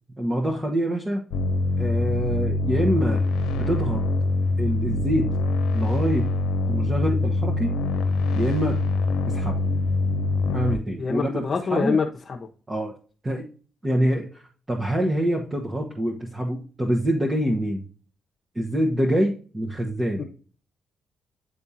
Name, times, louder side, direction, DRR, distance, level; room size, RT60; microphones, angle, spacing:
voice 1, 0.2-1.2 1.8-3.2 3.5-4.0 4.6-5.3 5.7-6.3 6.7-7.8 8.4-8.8 9.3-9.6 10.5-11.4 11.7-12.0 12.7-12.9 13.2-13.5 13.8-14.3 14.7-17.8 18.5-20.2, equal, 25° right, 0 dB, 1.3 m, -25 dB
sound 1, 1.3-10.8, left 2 dB, 85° left, 0.7 m, -24 dB
voice 2, 11.0-12.4 20.2-20.3, left 5 dB, 45° left, 0 dB, 0.9 m, -25 dB
9.6 x 3.5 x 2.8 m, 0.39 s
cardioid pair, 75°, 0 cm